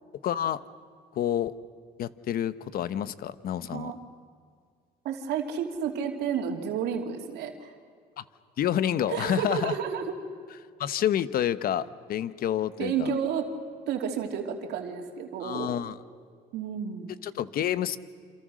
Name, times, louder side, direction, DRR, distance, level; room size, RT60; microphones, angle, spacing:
voice 1, 0.2-0.6 1.1-1.5 2.0-3.9 8.2-8.3 8.6-9.7 10.8-13.1 15.4-16.0 17.2-18.0, left 10 dB, 60° left, 15 dB, 1.1 m, -28 dB
voice 2, 5.0-7.7 9.1-10.1 12.8-13.5 13.9-15.8 16.5-17.1, right 7 dB, 80° right, 4 dB, 2.9 m, -31 dB
28.5 x 26.5 x 6.4 m, 2.1 s
cardioid pair, 110°, 17 cm